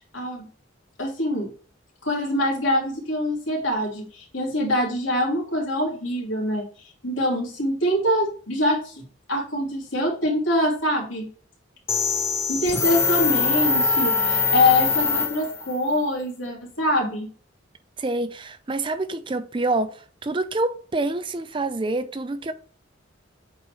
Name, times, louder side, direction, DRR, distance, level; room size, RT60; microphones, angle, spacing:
voice 1, 0.1-0.5 1.0-1.5 2.0-6.7 7.0-11.3 12.5-17.3, left 1 dB, 75° left, 3.0 m, -24 dB
sound 1, 11.9-15.8, left 4 dB, 15° left, 0.6 m, -23 dB
voice 2, 18.0-22.5, right 2 dB, 25° right, 0.4 m, -27 dB
8.1 x 4.5 x 3.2 m
head